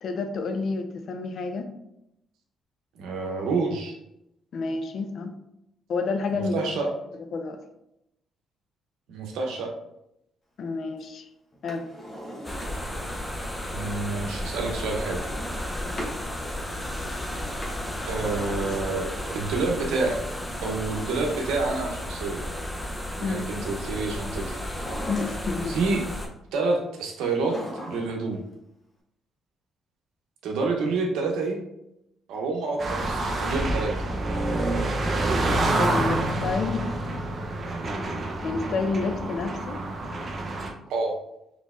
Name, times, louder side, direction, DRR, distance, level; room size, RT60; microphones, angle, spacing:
voice 1, 0.0-1.7 4.5-5.3 5.9-6.7 7.3-7.6 10.6-11.3 11.6-11.9 15.8-15.9 23.2-23.4 25.1-25.8 35.8-36.9 38.4-39.8, left 4 dB, 60° left, 7 dB, 0.5 m, -29 dB
voice 2, 3.0-4.0 6.3-6.9 9.1-9.7 13.7-15.2 18.0-20.2 20.6-22.4 23.2-24.6 25.7-26.0 26.5-27.6 27.9-28.4 30.4-31.6 32.3-33.9 40.9-41.1, right 3 dB, 90° right, 2 dB, 0.7 m, -28 dB
Drawer open or close, 11.5-13.1 14.7-16.2 17.4-19.2 20.4-22.1 24.5-25.8 27.2-28.3 28.6-28.7, equal, 40° left, 1.1 m, -40 dB
sound 1, 12.4-26.3, left 1 dB, 10° left, 0.6 m, -33 dB
sound 2, 32.8-40.7, right 2 dB, 40° right, 0.6 m, -27 dB
4.0 x 3.2 x 2.4 m, 0.84 s
cardioid pair, 90°, 0 cm